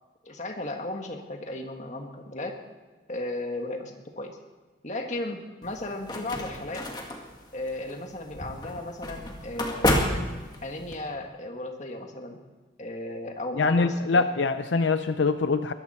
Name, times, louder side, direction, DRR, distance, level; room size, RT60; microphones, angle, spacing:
voice 1, 0.2-2.6 3.1-4.4 4.8-6.9 7.5-10.0 10.6-12.4 12.8-14.3, left 1 dB, 40° left, 3 dB, 1.8 m, -35 dB
sound 1, 5.6-11.0, left 1 dB, 25° left, 1.9 m, -30 dB
voice 2, 13.6-15.7, left 4 dB, 80° left, 10 dB, 0.6 m, -24 dB
22.0 x 14.5 x 4.4 m, 1.3 s
head